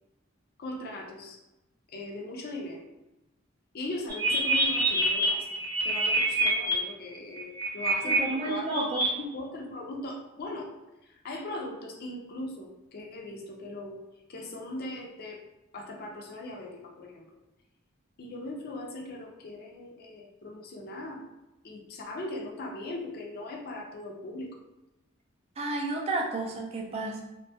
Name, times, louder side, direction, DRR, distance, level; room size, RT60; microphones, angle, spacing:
voice 1, 0.6-1.4 1.9-2.9 3.7-5.6 5.8-8.7 9.0-10.7 11.1-14.0 14.3-15.4 15.7-17.3 18.2-21.2 21.6-24.5, left 2 dB, 45° left, 0 dB, 0.5 m, -39 dB
sound 1, 4.1-6.7 7.3-8.2 8.5-9.1, right 2 dB, 60° right, 0.7 m, -26 dB
voice 2, 8.0-9.1 25.6-27.2, right 2 dB, 30° right, 0 dB, 0.4 m, -31 dB
2.6 x 2.2 x 2.7 m, 0.98 s
head